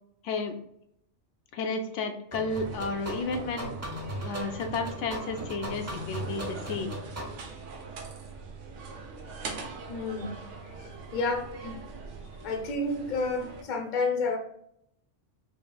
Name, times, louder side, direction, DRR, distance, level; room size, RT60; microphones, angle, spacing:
voice 1, 0.2-0.6 1.5-3.7 4.2-7.0, left 3 dB, 80° left, 6 dB, 0.9 m, -32 dB
sound 1, 2.3-7.3, equal, 20° right, 0.5 m, -38 dB
sound 2, 2.5-13.6, right 4 dB, 90° right, 1.1 m, -43 dB
voice 2, 9.9-10.3 10.6-11.7 12.4-14.4, left 3 dB, 50° left, 3 dB, 0.7 m, -30 dB
5.0 x 2.8 x 2.2 m, 0.72 s
omnidirectional pair, 1.2 m